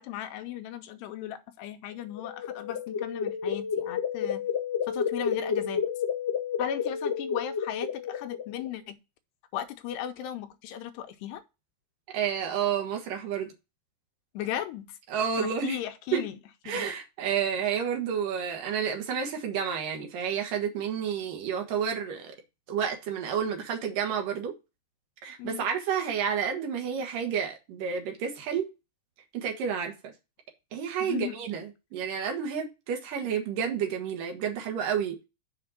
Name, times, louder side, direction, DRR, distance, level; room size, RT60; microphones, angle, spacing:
voice 1, 0.0-4.4 4.9-5.8 6.6-9.0 9.5-11.4 14.3-15.0 15.4-16.4 16.7-16.9 25.4-25.6 31.0-31.4, left 10 dB, 80° left, 2.8 m, -37 dB
sound 1, 2.0-8.7, left 7 dB, 65° left, 0.6 m, -31 dB
voice 2, 12.1-13.5 15.1-15.8 16.1-16.2 16.6-22.3 22.7-24.5 25.2-28.6 29.3-30.1 30.7-35.2, right 7 dB, 60° right, 2.7 m, -30 dB
6.9 x 5.1 x 5.5 m
omnidirectional pair, 4.9 m